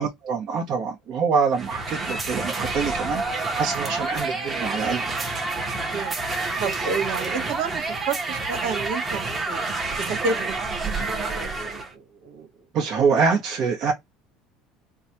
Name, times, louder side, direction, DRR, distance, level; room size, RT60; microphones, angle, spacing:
voice 1, 0.0-5.1 12.7-13.9, right 5 dB, 50° right, 1.2 m, -25 dB
sound 1, 1.5-11.9, right 3 dB, 20° right, 1.2 m, -28 dB
voice 2, 6.6-9.6 10.0-10.5 10.9-12.5, right 4 dB, 75° right, 1.6 m, -30 dB
4.0 x 2.4 x 2.8 m
cardioid pair, 130°, 0 cm